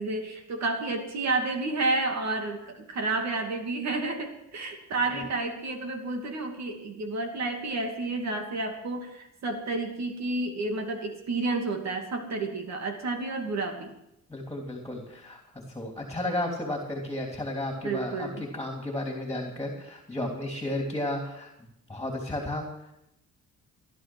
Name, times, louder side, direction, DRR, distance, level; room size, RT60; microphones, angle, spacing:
voice 1, 0.0-13.9 17.8-18.4, right 3 dB, 60° right, 4 dB, 2.6 m, -30 dB
voice 2, 14.3-15.4 15.7-22.6, left 1 dB, 10° left, 1 dB, 3.1 m, -33 dB
16.0 x 11.5 x 6.2 m, 0.84 s
cardioid pair, 90°, 30 cm